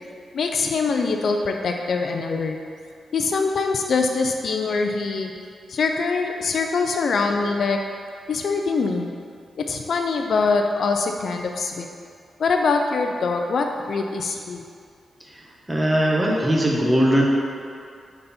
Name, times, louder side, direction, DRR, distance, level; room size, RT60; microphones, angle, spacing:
voice 1, 0.3-2.6 3.1-5.3 5.7-7.8 8.3-9.1 9.6-11.9 12.4-14.6, left 4 dB, 55° left, 3 dB, 0.4 m, -23 dB
voice 2, 15.7-17.2, equal, 10° right, -2 dB, 1.0 m, -19 dB
9.0 x 4.0 x 4.3 m, 2.3 s
wide cardioid pair, 155°, 0 cm